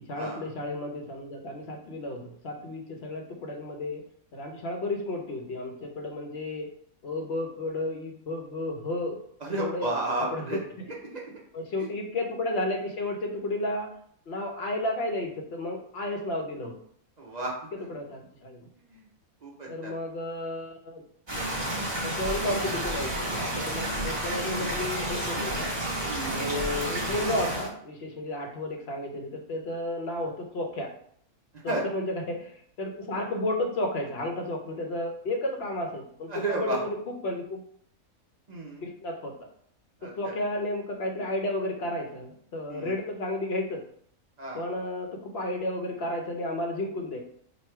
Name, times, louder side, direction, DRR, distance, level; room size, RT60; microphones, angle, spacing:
voice 1, 0.1-4.0 4.3-6.7 7.0-9.2 9.5-9.9 10.3-10.4 11.5-13.9 14.3-16.8 17.9-18.7 19.7-21.0 22.0-25.7 26.2-30.9 31.6-37.0 37.2-37.6 38.8-39.3 40.2-43.8 44.5-47.2, left 1 dB, 55° left, 2 dB, 0.8 m, -32 dB
voice 2, 9.4-10.6 11.0-11.4 11.8-11.9 17.2-17.9 18.9-19.1 19.4-19.9 26.0-26.4 31.7-31.8 36.3-36.8 38.5-38.9 40.0-40.3 42.7-43.0 44.4-44.7, right 2 dB, 45° right, -3 dB, 0.6 m, -33 dB
sound 1, 21.3-27.7, right 1 dB, 20° right, 0.9 m, -30 dB
3.1 x 2.4 x 4.3 m, 0.64 s
omnidirectional pair, 1.5 m